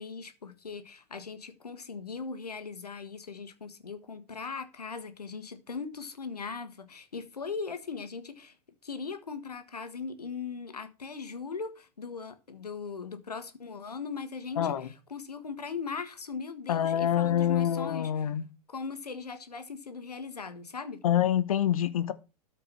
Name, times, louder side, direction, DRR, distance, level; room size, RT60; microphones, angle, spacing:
voice 1, 0.0-8.5 8.8-18.1 18.7-21.0, left 5 dB, 75° left, 1.6 m, -39 dB
voice 2, 14.6-14.9 16.7-18.4 21.0-22.1, left 10 dB, 60° left, 1.1 m, -26 dB
13.0 x 5.0 x 6.0 m
figure-of-eight pair, 100°, 20 cm